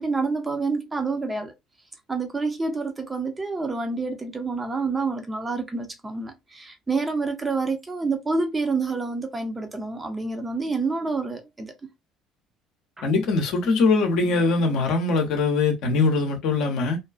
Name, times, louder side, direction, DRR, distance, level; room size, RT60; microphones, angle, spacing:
voice 1, 0.0-1.5 2.1-11.7 13.0-13.1, right 3 dB, 20° right, 0.7 m, -28 dB
voice 2, 13.0-17.0, left 3 dB, 60° left, 0.7 m, -22 dB
2.6 x 2.3 x 2.3 m
figure-of-eight pair, 55°, 0 cm